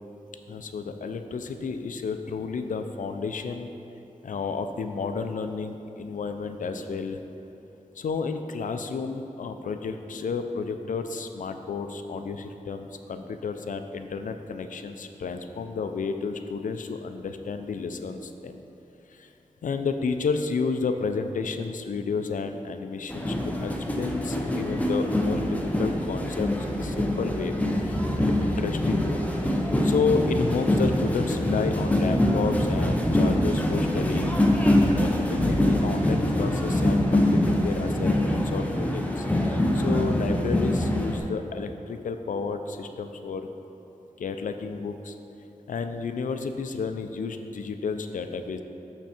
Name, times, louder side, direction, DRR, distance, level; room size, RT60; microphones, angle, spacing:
voice 1, 0.5-3.7 4.2-7.2 8.0-18.6 19.1-19.3 19.6-29.2 29.5-34.4 34.7-43.5 44.2-45.1 45.7-48.6, left 4 dB, 75° left, 7 dB, 0.4 m, -31 dB
sound 1, 23.1-41.2, left 1 dB, 10° left, 0.6 m, -24 dB
6.4 x 5.9 x 4.3 m, 2.9 s
wide cardioid pair, 125°, 13 cm